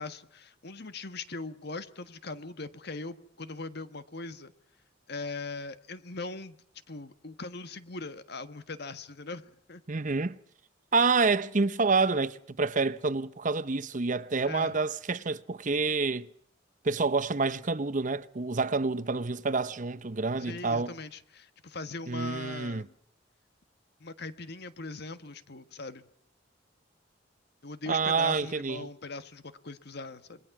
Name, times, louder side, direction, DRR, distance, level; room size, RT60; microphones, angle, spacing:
voice 1, 0.0-4.5 5.1-6.6 6.9-9.4 9.7-9.8 14.4-14.7 20.4-22.9 24.0-26.0 27.6-30.4, left 3 dB, 60° left, 1.5 m, -40 dB
voice 2, 9.9-10.4 10.9-16.3 16.8-20.9 22.1-22.8 27.9-28.9, right 4 dB, 40° right, 0.8 m, -28 dB
27.5 x 21.5 x 6.1 m
head